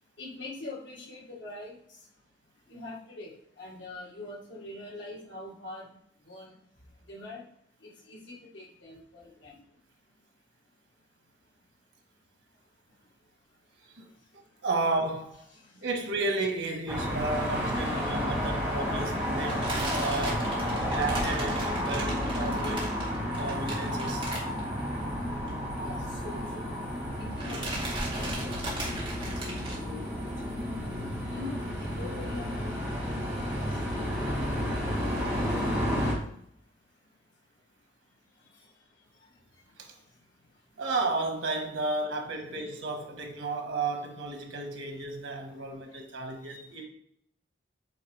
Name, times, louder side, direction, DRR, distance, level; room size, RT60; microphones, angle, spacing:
voice 1, 0.2-1.8 2.7-5.9 6.3-6.5 7.1-7.4 7.8-9.6 15.5-15.6 25.8-26.7 27.2-30.6 31.2-35.4 46.5-46.7, left 2 dB, 85° left, 1.8 m, -44 dB
voice 2, 14.3-15.4 15.8-20.5 20.8-22.9 23.4-24.3 39.8-39.9 40.8-46.8, right 3 dB, 90° right, 1.3 m, -33 dB
sound 1, 16.9-36.1, equal, 5° right, 1.7 m, -31 dB
sound 2, 19.5-25.0 25.3-25.5 25.8-25.9 26.8-27.1 27.4-29.8, right 1 dB, 25° right, 1.7 m, -36 dB
8.2 x 3.9 x 3.2 m
head